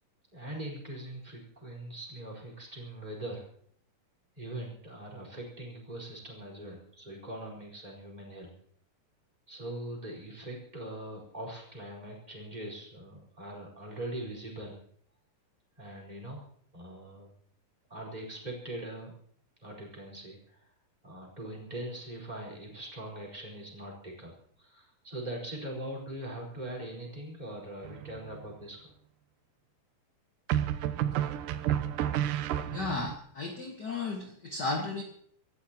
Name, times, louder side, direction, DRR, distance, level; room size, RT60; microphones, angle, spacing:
voice 1, 0.3-3.5 4.4-8.5 9.5-14.8 15.8-16.4 16.7-17.3 17.9-19.1 19.6-20.7 21.0-24.3 24.6-28.9, right 1 dB, 10° right, -1 dB, 4.5 m, -41 dB
sound 1, 27.8-28.4 30.5-33.2, right 11 dB, 80° right, 2.3 m, -31 dB
voice 2, 32.7-35.0, left 3 dB, 45° left, 2 dB, 1.5 m, -34 dB
27.0 x 14.0 x 2.9 m, 0.63 s
omnidirectional pair, 3.9 m